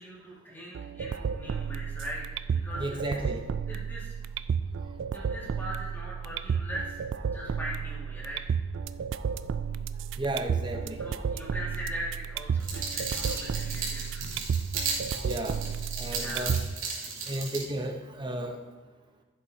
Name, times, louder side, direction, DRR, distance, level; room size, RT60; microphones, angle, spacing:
voice 1, 0.0-2.2 2.5-3.2 3.7-4.1 5.1-7.0 7.2-8.4 11.0-14.2 16.1-16.5, equal, 10° left, -6 dB, 2.0 m, -40 dB
sound 1, 0.7-16.7, right 6 dB, 65° right, 0.3 m, -32 dB
voice 2, 2.8-3.4 10.2-11.1 15.1-15.6 16.0-16.6 17.3-18.6, right 1 dB, 25° right, 5 dB, 0.9 m, -33 dB
sound 2, 12.6-17.6, right 4 dB, 80° right, 2.7 m, -35 dB
14.5 x 7.5 x 2.8 m, 1.3 s
head